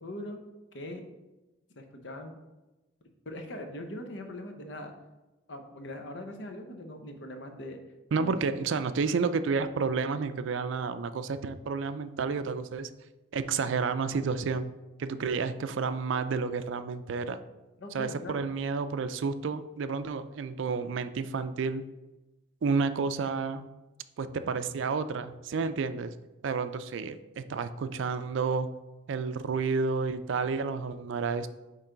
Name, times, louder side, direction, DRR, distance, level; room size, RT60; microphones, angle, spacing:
voice 1, 0.0-0.4 0.7-1.0 1.8-2.4 3.3-4.9 5.5-7.8 8.2-8.4 17.8-18.4, left 1 dB, 60° left, 6 dB, 0.7 m, -41 dB
voice 2, 8.1-12.9 13.3-14.7 15.0-17.4 17.9-21.8 22.6-23.7 24.2-26.1 26.4-28.7 29.1-31.5, right 5 dB, 70° right, 12 dB, 0.4 m, -30 dB
8.9 x 3.2 x 3.8 m, 1.1 s
head